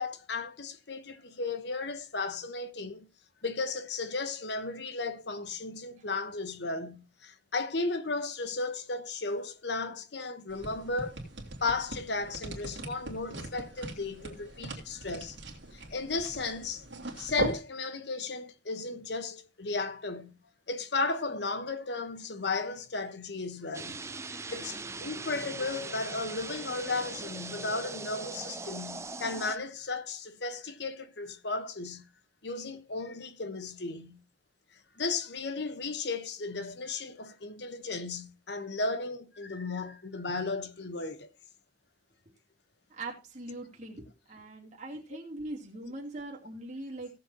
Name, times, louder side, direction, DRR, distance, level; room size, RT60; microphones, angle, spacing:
voice 1, 0.0-3.1 3.4-11.2 11.6-15.4 15.7-16.8 17.2-20.3 20.7-32.0 32.4-34.2 35.0-41.3, left 3 dB, 65° left, 1.1 m, -35 dB
sound 1, 10.5-17.6, right 2 dB, 75° right, 2.9 m, -40 dB
sound 2, 23.7-29.6, right 3 dB, 15° right, 0.5 m, -40 dB
voice 2, 43.0-47.1, right 2 dB, 40° right, 3.0 m, -41 dB
17.5 x 7.3 x 2.9 m
head